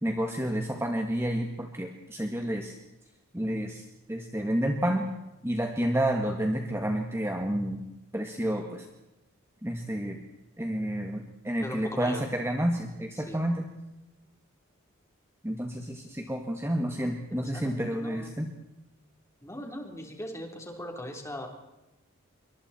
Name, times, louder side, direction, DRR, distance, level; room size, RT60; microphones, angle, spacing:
voice 1, 0.0-2.8 3.3-5.1 5.4-7.8 8.1-8.9 9.6-10.2 10.6-13.6 15.4-18.5, right 1 dB, 10° right, 3 dB, 1.8 m, -30 dB
voice 2, 11.6-12.2 13.3-13.4 17.3-18.4 19.4-21.5, equal, 15° left, 2 dB, 3.7 m, -39 dB
26.5 x 24.0 x 4.4 m, 0.95 s
head